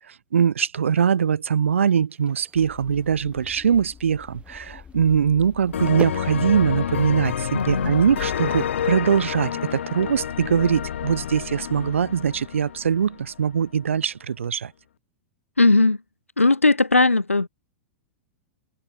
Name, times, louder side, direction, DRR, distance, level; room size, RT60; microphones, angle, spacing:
voice 1, 0.3-14.7, right 7 dB, 70° right, 0.7 m, -22 dB
sound 1, 2.1-8.9, right 6 dB, 15° right, 2.0 m, -43 dB
sound 2, 2.5-10.0, left 7 dB, 20° left, 2.1 m, -47 dB
sound 3, 5.7-13.4, left 9 dB, 65° left, 0.4 m, -29 dB
voice 2, 7.5-7.9 15.6-16.0 16.4-17.5, left 3 dB, 85° left, 0.9 m, -18 dB
figure-of-eight pair, 100°, 7 cm